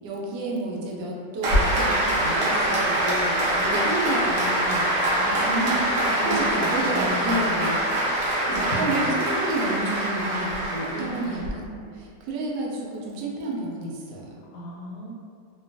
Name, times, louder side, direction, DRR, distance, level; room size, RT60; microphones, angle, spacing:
voice 1, 0.0-4.9 5.2-5.8 6.1-7.8 8.4-14.4, right 2 dB, 80° right, -3 dB, 1.2 m, -30 dB
Applause, 1.4-11.5, right 1 dB, 60° right, 0.9 m, -24 dB
voice 2, 5.0-6.6 6.9-7.6 7.9-9.1 10.9-11.4 14.5-15.1, equal, 75° left, -3 dB, 1.1 m, -36 dB
2.9 x 2.2 x 2.5 m, 2.2 s
omnidirectional pair, 1.9 m